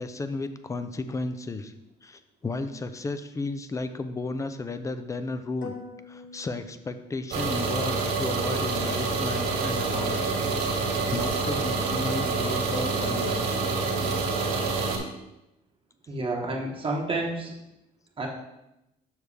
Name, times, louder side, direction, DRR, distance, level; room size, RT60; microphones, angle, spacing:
voice 1, 0.0-1.7 2.0-5.7 6.1-10.3 10.8-13.4, left 3 dB, 20° left, 10 dB, 0.5 m, -33 dB
sound 1, 5.6-7.6, left 4 dB, 55° left, 1.3 m, -45 dB
sound 2, 7.3-15.0, right 3 dB, 80° right, 2.2 m, -27 dB
voice 2, 16.1-17.5 18.2-18.3, right 2 dB, 30° right, -1 dB, 1.2 m, -29 dB
7.2 x 6.3 x 3.3 m, 0.89 s
cardioid pair, 110°, 17 cm